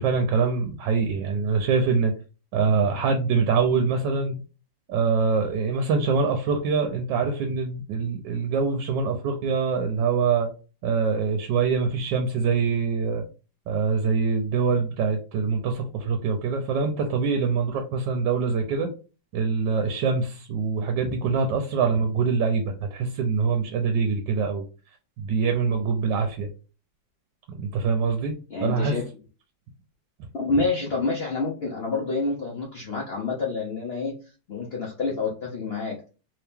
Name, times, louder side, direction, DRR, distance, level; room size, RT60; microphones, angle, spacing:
voice 1, 0.0-2.1 2.5-4.4 4.9-10.5 10.8-13.2 13.7-18.9 19.3-24.6 25.2-26.5 27.5-28.3 28.6-29.0, right 5 dB, 75° right, 5 dB, 1.2 m, -24 dB
voice 2, 28.5-29.0 30.3-34.1 34.5-36.1, left 3 dB, 80° left, -2 dB, 0.5 m, -28 dB
3.2 x 2.9 x 3.4 m, 0.35 s
omnidirectional pair, 2.1 m